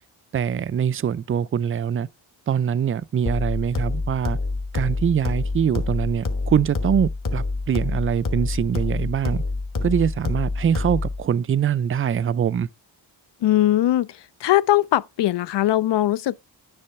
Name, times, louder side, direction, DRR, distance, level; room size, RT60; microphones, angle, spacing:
voice 1, 0.3-2.1 2.5-4.4 4.7-9.4 9.8-12.7, right 8 dB, 30° right, 0.4 m, -23 dB
sound 1, 3.3-11.3, left 3 dB, 45° left, 1.3 m, -27 dB
voice 2, 13.4-14.1 14.4-16.4, left 13 dB, 65° left, 0.5 m, -20 dB
9.9 x 3.3 x 5.7 m
cardioid pair, 80°, 46 cm